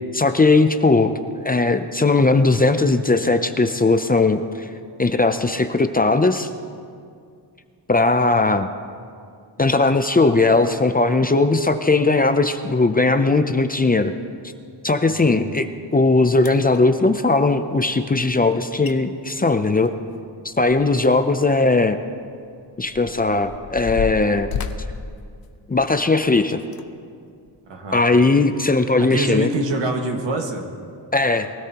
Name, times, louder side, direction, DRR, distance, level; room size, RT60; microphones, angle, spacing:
voice 1, 0.1-1.1 1.4-4.7 5.0-6.5 7.9-8.7 9.6-14.1 14.8-15.7 15.9-19.9 20.4-22.0 22.8-24.5 25.7-26.6 27.9-29.5 31.1-31.5, left 3 dB, 20° left, 8 dB, 0.4 m, -18 dB
voice 2, 15.0-15.4 27.7-28.0 29.0-30.6, right 2 dB, 90° right, 2 dB, 1.7 m, -25 dB
sound 1, 15.9-16.0 16.4-16.8 18.5-18.6 18.8-19.0 19.3-21.1 21.4-21.6 22.3-26.0 26.6-26.8 27.5-27.6, left 6 dB, 55° left, 0.8 m, -33 dB
23.0 x 16.5 x 2.9 m, 2.3 s
wide cardioid pair, 170°, 43 cm